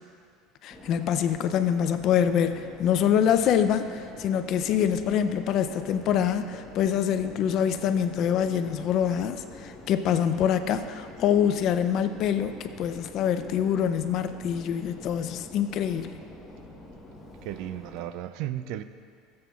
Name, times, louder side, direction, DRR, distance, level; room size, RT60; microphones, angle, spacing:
voice 1, 0.6-16.2, left 9 dB, 40° left, 10 dB, 0.4 m, -25 dB
Subway metro underground, 0.7-18.0, left 1 dB, 15° left, 1.1 m, -46 dB
voice 2, 17.4-18.8, right 12 dB, 55° right, 12 dB, 0.3 m, -34 dB
16.5 x 7.6 x 2.3 m, 2.1 s
cardioid pair, 165°, 0 cm